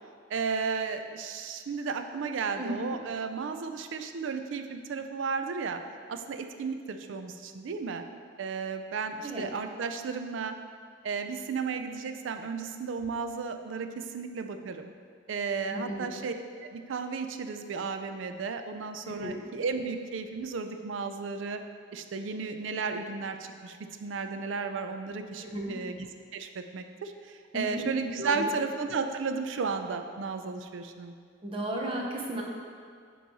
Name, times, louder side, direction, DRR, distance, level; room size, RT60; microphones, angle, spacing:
voice 1, 0.3-5.8 6.1-8.0 8.4-10.5 11.0-14.9 15.3-16.3 16.6-21.6 21.9-23.4 23.6-27.1 27.5-31.1, right 5 dB, 75° right, 7 dB, 0.4 m, -34 dB
voice 2, 15.7-16.1 19.0-19.4 25.4-25.7 27.5-27.8 28.2-28.5 31.4-32.4, right 1 dB, 30° right, -1 dB, 0.7 m, -34 dB
8.2 x 3.1 x 4.0 m, 2.1 s
head